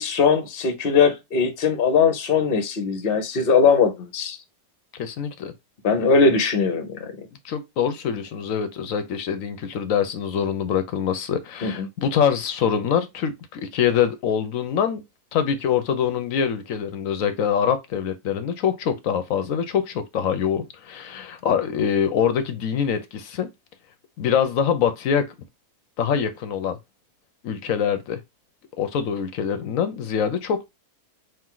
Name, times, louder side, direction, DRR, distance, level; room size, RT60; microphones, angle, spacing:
voice 1, 0.0-4.4 5.8-7.1 11.6-11.9, left 5 dB, 45° left, 0.9 m, -20 dB
voice 2, 5.0-5.5 7.4-15.0 15.3-23.5 24.2-25.3 26.0-26.8 27.4-28.2 28.8-30.7, left 8 dB, 65° left, 1.0 m, -24 dB
4.6 x 2.6 x 3.8 m
omnidirectional pair, 1.7 m